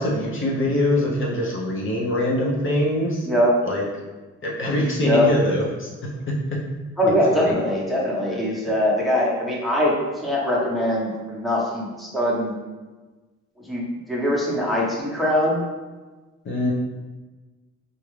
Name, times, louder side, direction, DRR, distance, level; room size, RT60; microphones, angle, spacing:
voice 1, 0.0-3.3 3.6-3.8 4.4-6.6 7.3-7.5 8.3-8.4 16.4-16.7, left 1 dB, 40° left, -3 dB, 0.7 m, -23 dB
voice 2, 7.0-12.5 13.7-15.6, left 1 dB, ahead, -5 dB, 0.9 m, -22 dB
3.6 x 2.2 x 3.1 m, 1.2 s
cardioid pair, 90°, 30 cm